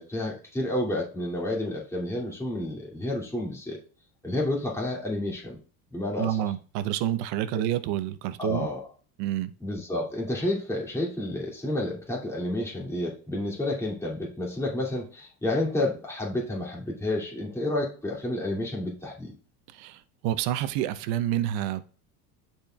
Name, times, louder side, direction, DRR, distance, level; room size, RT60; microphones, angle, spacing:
voice 1, 0.0-3.8 4.2-5.6 5.9-6.4 7.5-7.6 8.4-8.8 9.6-19.3, left 1 dB, 5° left, 2.4 m, -30 dB
voice 2, 6.2-8.7 9.2-9.5 19.7-21.8, right 12 dB, 60° right, 0.8 m, -28 dB
12.0 x 4.5 x 2.3 m
hypercardioid pair, 90°, 50 cm